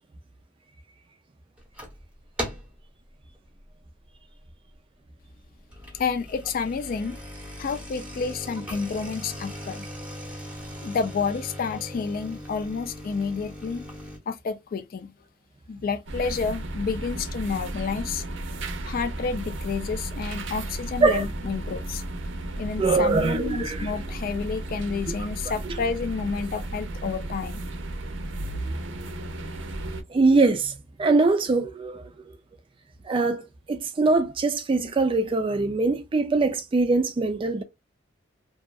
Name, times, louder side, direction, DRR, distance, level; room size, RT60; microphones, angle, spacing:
sound 1, 1.6-2.0 2.4-2.8 3.3-3.6 4.1-4.2 4.5-4.6 5.5-14.2, equal, 5° right, 0.8 m, -39 dB
voice 1, 5.9-7.2 7.6-9.9 10.8-13.9 14.3-15.1 15.7-18.2 18.8-22.0 22.6-27.6, left 5 dB, 50° left, 0.3 m, -30 dB
sound 2, 16.1-30.0, right 1 dB, 85° right, 0.5 m, -34 dB
voice 2, 22.8-23.9 30.1-32.1 33.1-37.6, right 3 dB, 30° right, 0.3 m, -22 dB
2.7 x 2.3 x 2.2 m
head